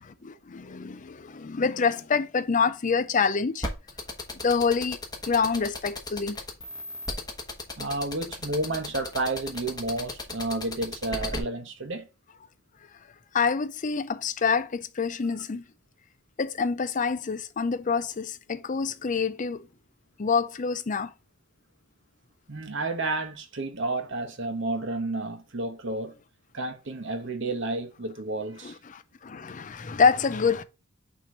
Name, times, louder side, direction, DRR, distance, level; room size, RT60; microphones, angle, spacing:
voice 1, 0.2-3.7 4.4-5.0 5.3-6.4 13.3-15.6 16.4-19.6 20.2-21.1 28.6-30.6, left 5 dB, 35° left, 0.5 m, -26 dB
sound 1, 3.6-11.4, left 2 dB, 20° left, 1.3 m, -34 dB
voice 2, 7.8-12.1 22.5-26.1 26.5-28.8, right 2 dB, 60° right, 1.1 m, -31 dB
6.2 x 3.1 x 5.2 m
head